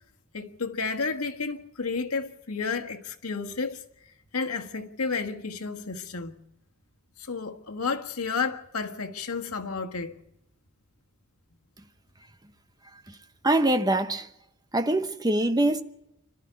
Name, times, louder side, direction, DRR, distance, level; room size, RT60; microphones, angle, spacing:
voice 1, 0.3-3.8 4.3-6.3 7.2-10.1, left 4 dB, 90° left, 1.7 m, -31 dB
voice 2, 13.4-14.3 14.7-15.8, right 1 dB, 20° right, 0.9 m, -24 dB
26.5 x 12.5 x 8.2 m
head